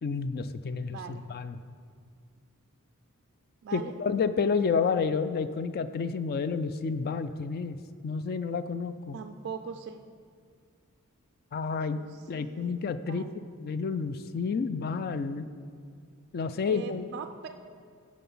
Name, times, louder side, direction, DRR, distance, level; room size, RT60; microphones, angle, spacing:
voice 1, 0.0-1.6 3.7-7.8 8.0-9.2 11.5-12.0 12.3-13.2 13.6-15.5 16.3-17.1, left 5 dB, 45° left, 11 dB, 0.3 m, -30 dB
voice 2, 0.9-1.3 3.6-4.0 9.1-10.1 11.9-13.4 16.7-17.5, right 6 dB, 50° right, 6 dB, 0.3 m, -41 dB
11.5 x 4.2 x 5.5 m, 2.2 s
head